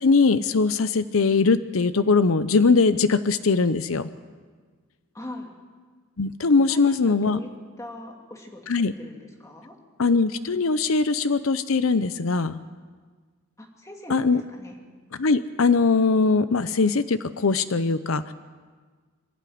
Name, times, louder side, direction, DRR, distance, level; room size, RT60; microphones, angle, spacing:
voice 1, 0.0-4.1 6.2-7.4 8.7-8.9 10.0-12.6 14.1-14.4 15.1-18.3, left 4 dB, 75° left, 12 dB, 0.7 m, -21 dB
voice 2, 5.1-5.6 6.7-7.5 7.8-9.8 13.6-14.8, left 1 dB, 15° left, 1 dB, 2.6 m, -41 dB
26.0 x 12.0 x 9.4 m, 1.5 s
head